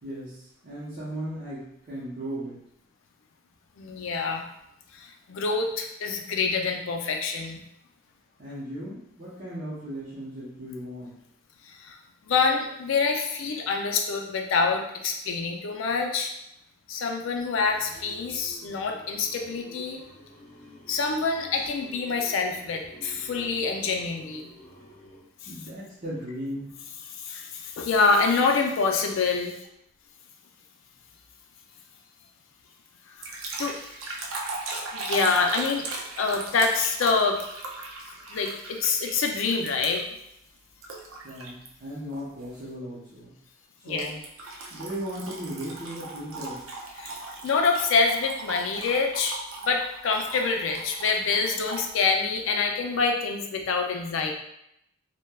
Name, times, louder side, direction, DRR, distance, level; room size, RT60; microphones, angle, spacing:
voice 1, 0.0-2.6 8.4-11.1 24.5-25.0 25.5-26.8 41.2-43.4 43.9-44.2 44.7-46.7, equal, 40° right, -10 dB, 0.7 m, -37 dB
voice 2, 3.8-4.4 4.9-7.6 11.6-12.0 12.3-16.3 16.9-20.0 20.9-24.5 27.2-29.5 33.2-33.7 34.9-35.8 36.2-37.4 38.3-40.0 43.8-44.1 47.0-54.3, left 4 dB, 75° left, 2 dB, 0.4 m, -26 dB
sound 1, 17.5-25.2, equal, 35° left, 1.3 m, -50 dB
sound 2, 33.2-40.2 40.8-41.7 42.1-42.4 44.0-51.9, right 2 dB, 85° right, 0.5 m, -38 dB
3.1 x 2.1 x 2.2 m, 0.78 s
head